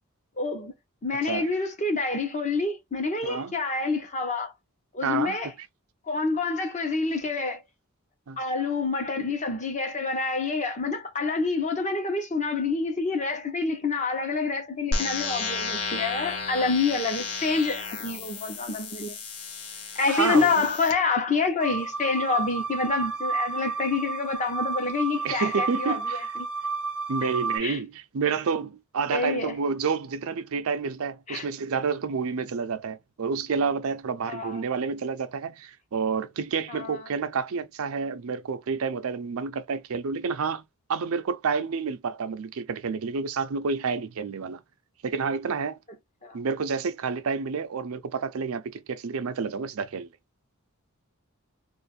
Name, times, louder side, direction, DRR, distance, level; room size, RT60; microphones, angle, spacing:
voice 1, 0.4-0.7 1.0-4.5 4.9-5.5 6.1-7.6 8.4-19.2 20.0-26.5 27.2-27.3 27.6-27.8 29.1-29.6 31.3-31.5 34.3-34.6 36.7-37.0 46.2-46.4, left 4 dB, 35° left, 0.8 m, -27 dB
voice 2, 3.2-3.5 5.0-5.4 8.3-8.4 20.1-20.7 25.2-26.3 27.1-40.6 40.9-44.6 45.0-45.8 46.3-50.1, right 5 dB, 65° right, 0.5 m, -29 dB
sound 1, 14.9-20.9, left 4 dB, 75° left, 1.1 m, -33 dB
sound 2, 21.6-27.6, right 4 dB, 5° right, 0.6 m, -31 dB
2.6 x 2.4 x 4.1 m
head